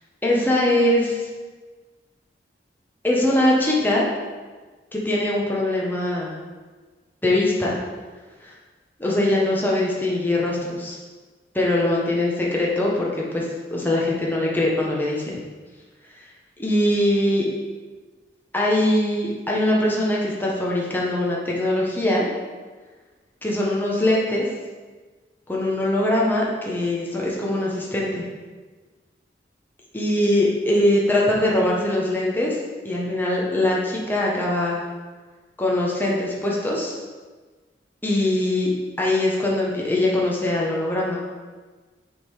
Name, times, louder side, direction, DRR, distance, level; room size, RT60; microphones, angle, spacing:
voice 1, 0.2-1.3 3.0-4.0 4.9-6.4 7.2-7.8 8.4-8.5 9.0-11.0 11.5-13.5 13.7-15.4 16.6-17.5 18.5-22.3 23.4-24.4 25.5-28.2 29.9-32.6 32.8-34.8 35.6-36.9 38.0-38.7 39.0-41.2, left 1 dB, 10° left, -4 dB, 1.0 m, -22 dB
6.9 x 3.8 x 4.7 m, 1.4 s
head